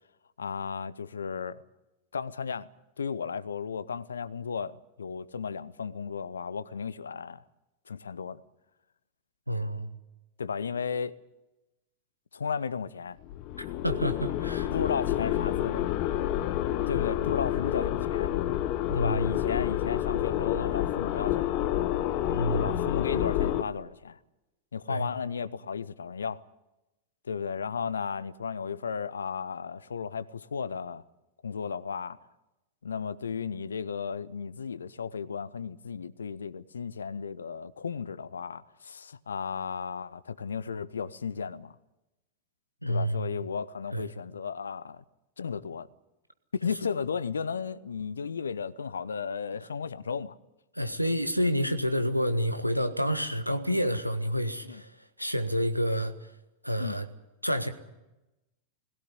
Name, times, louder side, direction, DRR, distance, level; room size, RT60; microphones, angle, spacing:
voice 1, 0.4-1.6 2.1-2.7 3.0-7.4 7.9-8.4 10.4-11.2 12.3-13.2 14.7-15.9 16.9-18.3 18.9-21.6 22.5-24.2 24.7-26.4 27.2-31.0 31.4-32.2 32.8-41.7 42.9-45.0 45.4-45.9 46.5-50.3 54.7-54.8 56.8-57.0, left 6 dB, 70° left, 0.8 m, -34 dB
voice 2, 9.5-9.9 13.8-14.7 18.9-19.3 22.3-22.7 24.9-25.1 42.8-43.4 43.9-44.1 50.8-54.9 55.2-56.1 56.6-57.1 57.4-57.7, equal, 90° right, 1.4 m, -29 dB
sound 1, 13.2-23.6, left 12 dB, 45° left, 1.2 m, -29 dB
20.5 x 17.0 x 9.8 m
figure-of-eight pair, 90°, 0 cm